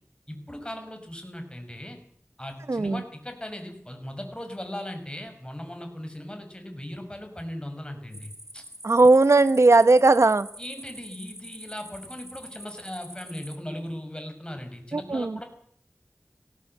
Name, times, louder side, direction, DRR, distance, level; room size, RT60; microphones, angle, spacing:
voice 1, 0.3-2.0 2.4-8.6 10.6-15.4, left 1 dB, 20° left, 5 dB, 5.9 m, -38 dB
sound 1, 8.1-13.6, equal, 10° right, 3.0 m, -45 dB
voice 2, 8.8-10.5 14.9-15.4, right 3 dB, 85° right, 14 dB, 1.0 m, -18 dB
20.0 x 16.5 x 7.8 m, 0.63 s
wide cardioid pair, 45°, 5 cm